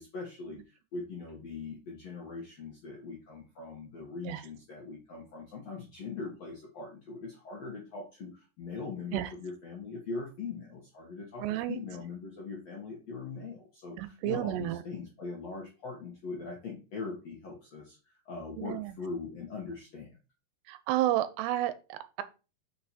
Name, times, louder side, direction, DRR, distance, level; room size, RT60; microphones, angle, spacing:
voice 1, 0.0-18.0 18.2-20.1, left 4 dB, 65° left, -2 dB, 1.6 m, -41 dB
voice 2, 11.4-11.8 14.0-14.8 18.6-18.9 20.7-22.2, right 14 dB, 85° right, 12 dB, 2.7 m, -31 dB
6.5 x 4.2 x 4.3 m, 0.32 s
omnidirectional pair, 5.0 m